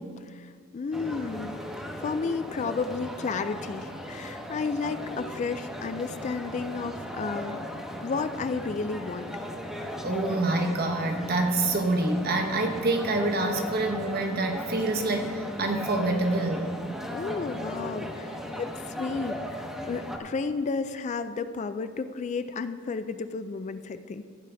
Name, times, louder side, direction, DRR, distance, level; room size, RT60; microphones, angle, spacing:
voice 1, 0.3-1.6 2.0-7.6 8.0-9.3 17.1-24.2, left 4 dB, 35° left, 11 dB, 0.3 m, -32 dB
sound 1, 0.9-20.2, equal, ahead, 0.9 m, -37 dB
voice 2, 10.0-16.7, right 2 dB, 45° right, 4 dB, 1.1 m, -26 dB
15.0 x 9.1 x 3.4 m, 2.1 s
head